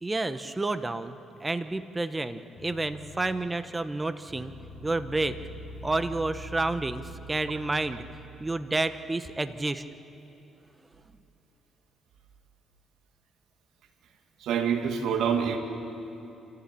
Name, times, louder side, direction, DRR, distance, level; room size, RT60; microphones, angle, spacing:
voice 1, 0.0-4.5 4.8-5.3 5.8-7.0 7.3-8.0 8.4-9.8, right 2 dB, 20° right, 11 dB, 1.1 m, -30 dB
sound 1, 2.6-3.7 4.3-8.4, equal, 25° left, 6.1 m, -44 dB
voice 2, 14.4-15.6, right 7 dB, 80° right, 5 dB, 2.2 m, -26 dB
27.5 x 14.5 x 8.5 m, 3.0 s
cardioid pair, 90°, 0 cm